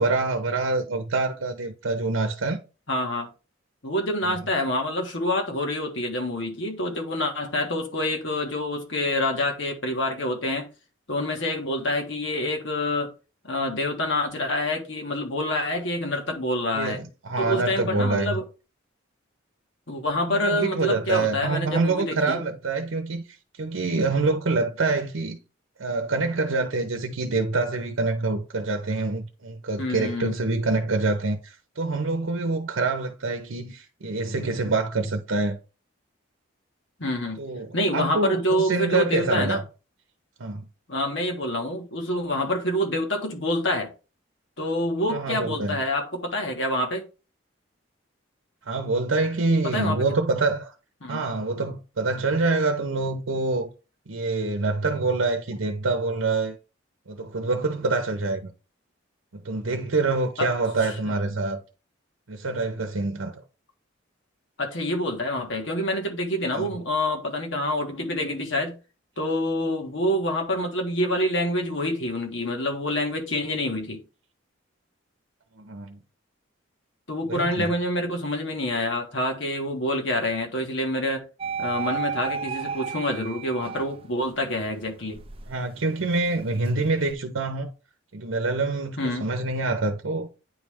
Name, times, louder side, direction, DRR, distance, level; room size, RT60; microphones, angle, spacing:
voice 1, 0.0-2.6 4.2-4.4 16.7-18.4 20.3-23.2 23.6-25.4 25.8-35.6 37.4-39.6 40.4-40.6 45.1-45.8 48.7-50.7 51.1-53.7 54.1-56.6 57.1-58.5 59.3-61.6 62.3-63.4 66.5-66.7 75.6-76.0 77.3-77.7 85.5-87.7 88.1-90.3, right 3 dB, 80° right, 0.8 m, -26 dB
voice 2, 2.9-3.3 3.8-10.7 11.1-13.1 13.5-17.0 17.4-18.4 19.9-22.4 29.8-30.4 37.0-37.4 37.7-39.6 40.9-43.9 44.6-47.0 49.6-50.0 51.0-51.2 60.4-60.5 64.6-68.7 69.2-74.0 77.1-81.2 81.6-85.2 89.0-89.3, left 1 dB, 70° left, 1.6 m, -27 dB
sound 1, 81.4-84.3 84.7-87.1, right 6 dB, 30° right, 0.4 m, -33 dB
9.5 x 3.2 x 3.5 m
head